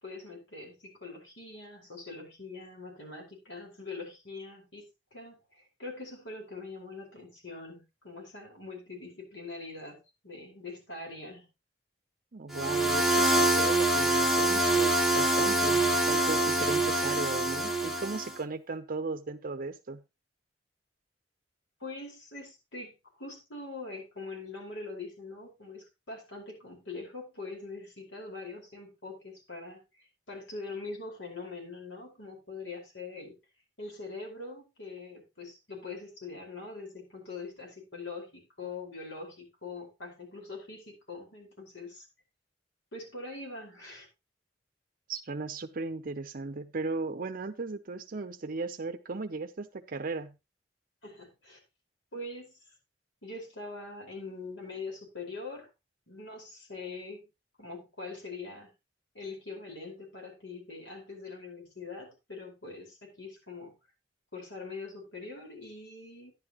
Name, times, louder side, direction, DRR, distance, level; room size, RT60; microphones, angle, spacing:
voice 1, 0.0-11.5 21.8-33.4 33.8-42.0 42.9-44.1 51.0-51.6 52.1-52.6 53.2-55.7 56.1-57.3 57.6-58.7 59.1-63.7 64.3-66.3, left 3 dB, 85° left, 0 dB, 5.0 m, -43 dB
voice 2, 12.3-20.0 45.1-50.4, right 3 dB, 50° right, 9 dB, 0.7 m, -36 dB
sound 1, 12.5-18.3, right 1 dB, ahead, 0.9 m, -25 dB
11.5 x 10.5 x 3.0 m, 0.25 s
head